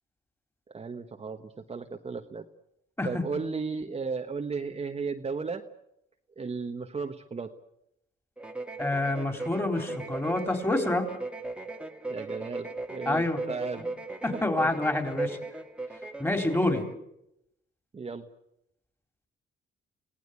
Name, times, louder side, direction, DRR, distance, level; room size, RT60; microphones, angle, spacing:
voice 1, 0.7-2.5 3.0-5.6 6.4-7.5 12.1-14.0 14.3-14.4 17.9-18.3, right 4 dB, 30° right, 4 dB, 1.3 m, -35 dB
sound 1, 8.4-16.9, right 2 dB, 5° right, 1.9 m, -38 dB
voice 2, 8.8-11.1 13.1-13.4 13.8-13.9 14.2-15.4 16.2-16.8, left 2 dB, 15° left, 6 dB, 4.1 m, -27 dB
26.5 x 17.5 x 8.5 m, 0.82 s
cardioid pair, 90°, 20 cm